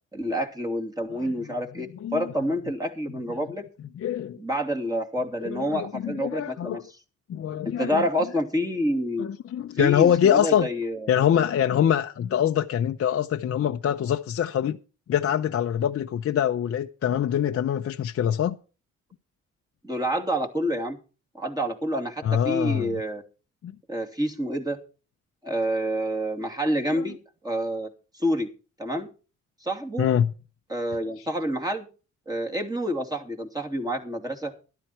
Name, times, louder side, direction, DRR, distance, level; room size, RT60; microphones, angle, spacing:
voice 1, 0.1-3.6 4.3-6.8 7.6-9.3 9.8-11.1 19.8-21.0 21.3-23.2 23.9-24.8 25.4-27.2 27.4-27.9 28.1-28.5 28.8-29.1 29.6-30.1 30.7-31.9 32.3-34.5, equal, 15° right, 2.8 m, -28 dB
voice 2, 1.8-2.3 4.0-4.4 5.4-6.8 7.3-8.1 9.2-10.7 11.1-14.8 15.1-18.5 22.2-23.0 23.6-23.7 26.9-27.0 30.0-30.3 31.2-31.3, left 9 dB, 50° left, 0.7 m, -24 dB
12.5 x 12.0 x 4.4 m
cardioid pair, 90°, 30 cm